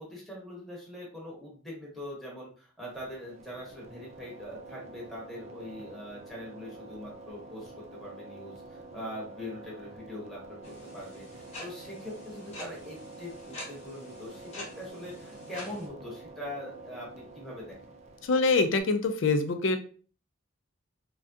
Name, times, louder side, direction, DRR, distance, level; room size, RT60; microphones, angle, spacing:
voice 1, 0.0-10.4 10.9-17.8, left 1 dB, ahead, -5 dB, 1.0 m, -42 dB
sound 1, 2.8-18.8, right 3 dB, 35° right, 0.4 m, -48 dB
sound 2, 10.6-15.9, left 1 dB, 30° left, 1.0 m, -46 dB
voice 2, 18.2-19.8, left 3 dB, 70° left, 8 dB, 0.4 m, -25 dB
3.5 x 2.3 x 2.6 m, 0.40 s
head